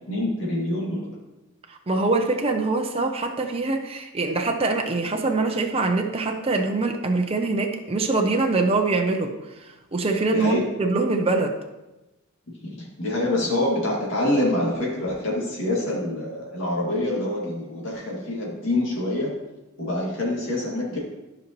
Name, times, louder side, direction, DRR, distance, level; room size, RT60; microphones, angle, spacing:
voice 1, 0.1-1.0 10.3-10.7 12.6-19.3 19.8-21.0, left 1 dB, 65° left, -4 dB, 2.3 m, -26 dB
voice 2, 1.7-9.3 9.6-11.5, right 3 dB, 30° right, 3 dB, 0.6 m, -24 dB
13.0 x 5.2 x 3.0 m, 1.0 s
head